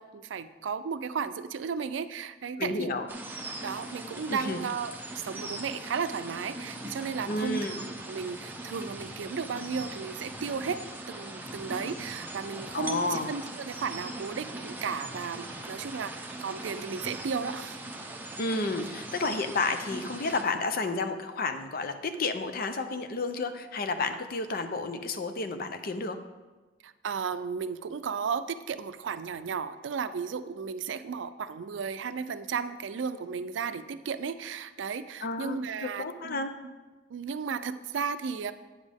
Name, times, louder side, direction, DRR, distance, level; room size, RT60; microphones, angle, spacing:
voice 1, 0.0-2.9 3.6-7.7 8.1-10.8 11.1-17.8 26.8-36.5 37.1-38.5, right 6 dB, 85° right, 12 dB, 0.4 m, -34 dB
voice 2, 2.6-3.1 4.3-4.6 7.3-7.8 12.7-13.3 18.4-26.2 35.2-36.5, left 3 dB, 55° left, 8 dB, 0.6 m, -31 dB
sound 1, 3.1-20.4, right 2 dB, 10° right, 0.8 m, -40 dB
8.7 x 7.3 x 3.5 m, 1.2 s
head